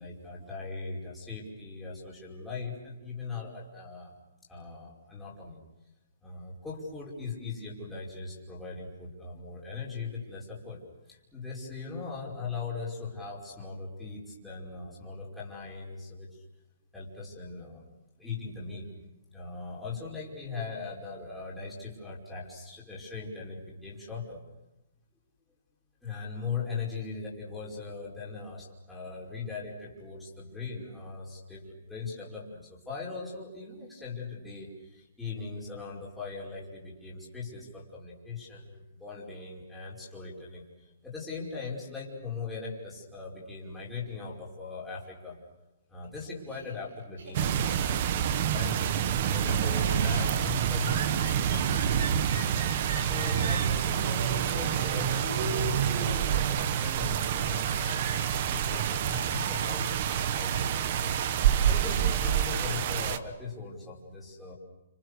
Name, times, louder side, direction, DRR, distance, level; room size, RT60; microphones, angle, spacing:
voice 1, 0.0-4.1 4.5-5.6 6.2-10.8 11.1-16.4 16.9-17.8 18.2-18.9 19.3-24.4 26.0-45.4 45.9-52.4 53.0-61.2 61.7-64.5, left 4 dB, 5° left, -7 dB, 5.2 m, -40 dB
Laughter, 46.0-48.2 48.5-61.4, right 4 dB, 65° right, 5.6 m, -41 dB
sound 1, 47.3-63.2, right 9 dB, 40° right, 1.1 m, -27 dB
30.0 x 27.0 x 6.7 m, 1.0 s
hypercardioid pair, 165°, 0 cm